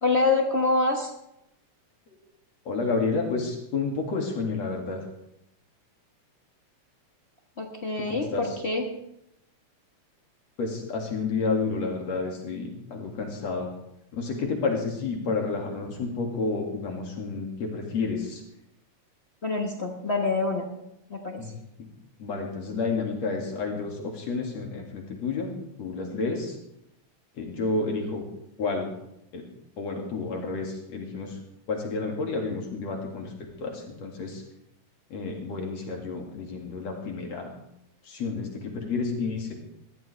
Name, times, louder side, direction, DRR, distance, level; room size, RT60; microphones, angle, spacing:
voice 1, 0.0-1.1 7.6-8.9 19.4-20.7 21.1-21.5, left 3 dB, 45° left, 2 dB, 0.8 m, -26 dB
voice 2, 2.7-5.0 8.1-8.4 10.6-13.7 14.1-18.4 21.4-21.5 21.8-21.9 22.2-25.5 25.8-26.6 27.4-28.2 28.6-28.9 29.3-29.4 29.8-31.4 31.7-33.3 33.6-34.4 35.1-37.5 38.0-39.6, left 4 dB, 65° left, 0 dB, 3.4 m, -30 dB
20.5 x 14.5 x 3.4 m, 0.81 s
omnidirectional pair, 3.3 m